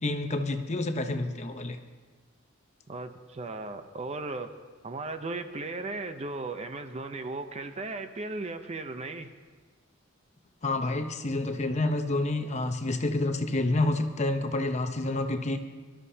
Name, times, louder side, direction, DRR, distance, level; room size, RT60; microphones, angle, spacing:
voice 1, 0.0-1.8 10.6-15.6, left 2 dB, 35° left, 7 dB, 0.8 m, -28 dB
voice 2, 2.9-4.6 4.8-9.3, right 2 dB, 35° right, 8 dB, 0.7 m, -36 dB
22.0 x 13.0 x 2.8 m, 1.4 s
head